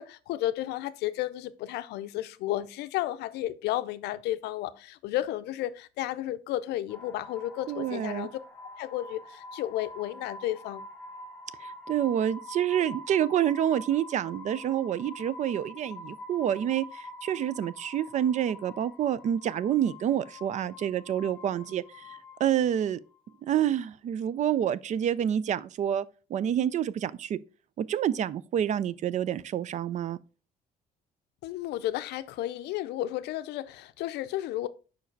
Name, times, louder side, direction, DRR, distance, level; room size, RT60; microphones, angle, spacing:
voice 1, 0.0-8.3 8.8-10.8 31.4-34.7, left 14 dB, 80° left, 0.5 m, -33 dB
sound 1, 6.9-23.5, left 1 dB, 10° left, 1.2 m, -46 dB
voice 2, 7.7-8.3 11.6-23.0 23.4-26.0 26.3-27.4 27.8-30.2, right 10 dB, 45° right, 0.4 m, -28 dB
5.2 x 4.6 x 4.5 m
cardioid pair, 110°, 17 cm